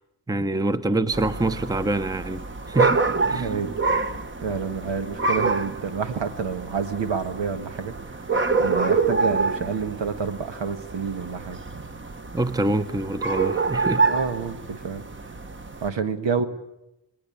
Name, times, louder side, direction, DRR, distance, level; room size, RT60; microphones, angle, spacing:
voice 1, 0.3-3.5 12.3-14.1, right 2 dB, 10° right, 0.8 m, -26 dB
sound 1, 1.1-15.9, right 4 dB, 25° right, 1.2 m, -27 dB
voice 2, 3.3-3.7 4.4-8.2 8.6-11.6 13.9-15.0 15.8-16.5, right 6 dB, 75° right, 1.8 m, -28 dB
20.5 x 20.0 x 8.6 m
wide cardioid pair, 120°, 44 cm